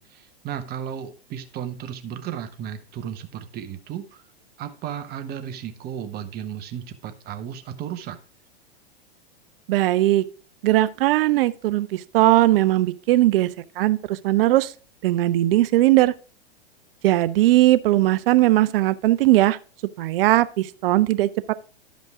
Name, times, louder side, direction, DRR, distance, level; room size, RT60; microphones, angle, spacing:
voice 1, 0.0-4.2 4.6-8.2, right 9 dB, 30° right, 0.9 m, -34 dB
voice 2, 9.7-10.2 10.6-13.5 13.8-14.7 15.0-16.1 17.0-19.6 20.0-21.5, right 16 dB, 60° right, 0.6 m, -19 dB
11.0 x 5.3 x 3.5 m
hypercardioid pair, 120°, 32 cm